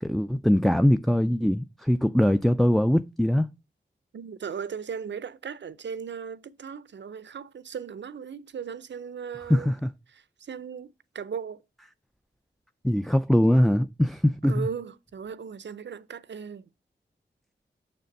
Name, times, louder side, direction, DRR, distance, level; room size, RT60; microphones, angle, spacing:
voice 1, 0.0-3.5 9.5-9.9 12.8-14.7, equal, ahead, 0.4 m, -22 dB
voice 2, 4.1-9.7 10.1-11.6 14.5-16.7, right 6 dB, 70° right, 0.6 m, -37 dB
6.7 x 6.7 x 5.3 m
cardioid pair, 65°, 19 cm